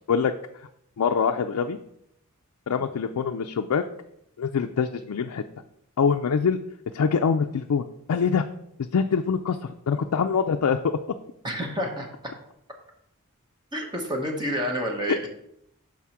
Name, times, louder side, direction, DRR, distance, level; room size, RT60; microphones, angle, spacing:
voice 1, 1.0-1.8 2.7-3.8 4.4-5.4 6.0-6.6 6.9-8.4 8.9-11.0 15.1-15.2, left 6 dB, 90° left, 5 dB, 0.4 m, -24 dB
voice 2, 11.4-12.1 13.7-15.3, equal, 20° right, 1 dB, 1.0 m, -29 dB
5.9 x 4.8 x 5.7 m, 0.77 s
head